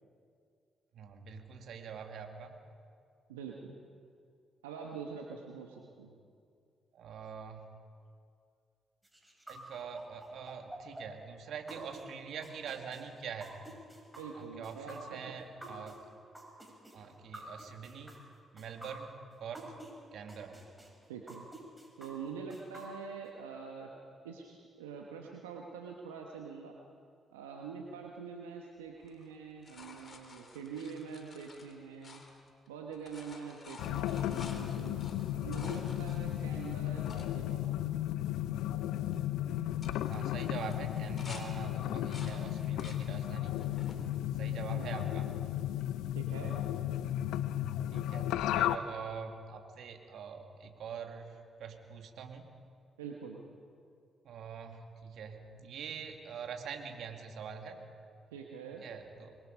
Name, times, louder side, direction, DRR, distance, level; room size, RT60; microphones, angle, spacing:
voice 1, 0.9-2.6 6.9-7.7 9.5-13.6 14.3-16.0 16.9-18.2 18.5-19.7 20.1-20.6 40.1-43.6 44.4-45.3 47.9-52.5 54.2-57.8 58.8-59.3, right 6 dB, 65° right, 4 dB, 2.1 m, -44 dB
voice 2, 3.3-3.7 4.6-6.2 14.2-15.3 15.6-15.9 21.1-21.5 22.0-23.9 24.2-26.8 27.3-32.2 32.7-35.0 35.4-38.1 44.7-45.1 46.1-46.5 53.0-53.4 58.3-58.8, right 6 dB, 90° right, 0 dB, 1.2 m, -45 dB
sound 1, 9.0-19.9 20.3-23.3, right 2 dB, 10° right, 6.8 m, -50 dB
sound 2, 29.0-32.7 32.9-37.3 37.9-38.0 38.2-38.6 38.9-39.2 39.6-41.5 41.8-43.0 43.5-44.0 44.6-45.4 47.0-47.1, left 4 dB, 50° left, 3.3 m, -52 dB
sound 3, 33.8-48.8, left 12 dB, 75° left, 0.6 m, -34 dB
25.0 x 22.5 x 5.3 m, 2.3 s
hypercardioid pair, 40°, 0 cm